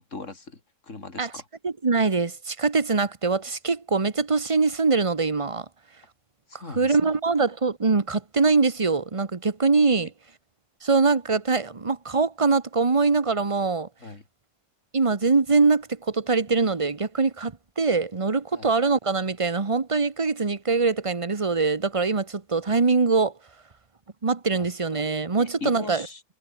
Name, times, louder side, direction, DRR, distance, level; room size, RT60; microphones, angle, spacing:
voice 1, 0.0-1.5 6.5-7.0 9.9-10.1 14.0-14.2 18.5-18.7 24.5-24.7 25.4-26.2, left 3 dB, 45° left, 3.8 m, -39 dB
voice 2, 1.6-5.6 6.7-10.1 10.8-13.9 14.9-23.3 24.2-26.0, right 4 dB, 20° right, 1.1 m, -23 dB
omnidirectional pair, 1.9 m